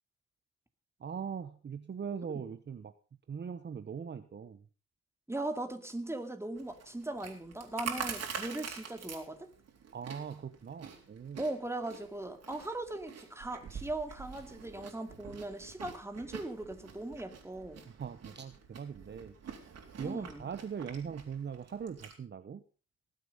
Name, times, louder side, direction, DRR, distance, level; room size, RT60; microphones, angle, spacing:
voice 1, 1.0-2.9 3.3-4.7 9.9-11.4 17.8-19.3 20.0-22.6, right 7 dB, 35° right, 1.0 m, -41 dB
voice 2, 5.3-9.5 11.4-17.9 20.0-20.5, right 2 dB, 10° right, 2.4 m, -39 dB
Chewing mastication, 6.6-22.1, right 6 dB, 55° right, 3.9 m, -46 dB
19.5 x 7.8 x 5.4 m
cardioid pair, 90°, 30 cm